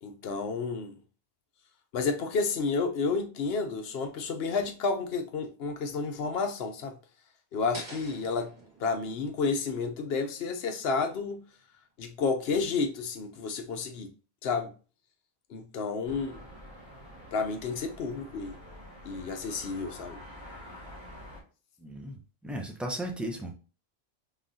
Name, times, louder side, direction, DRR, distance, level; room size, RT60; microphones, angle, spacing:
voice 1, 0.0-0.9 1.9-7.0 7.5-8.5 8.8-11.5 12.0-14.1 14.4-14.7 15.5-16.4 17.3-18.6 19.0-20.2, left 4 dB, 70° left, 0.9 m, -31 dB
sound 1, 7.7-10.8, right 2 dB, 50° right, 2.0 m, -47 dB
sound 2, 16.0-21.4, equal, 25° right, 1.6 m, -47 dB
voice 2, 21.8-23.5, right 1 dB, ahead, 0.5 m, -36 dB
3.9 x 3.5 x 2.6 m
omnidirectional pair, 1.1 m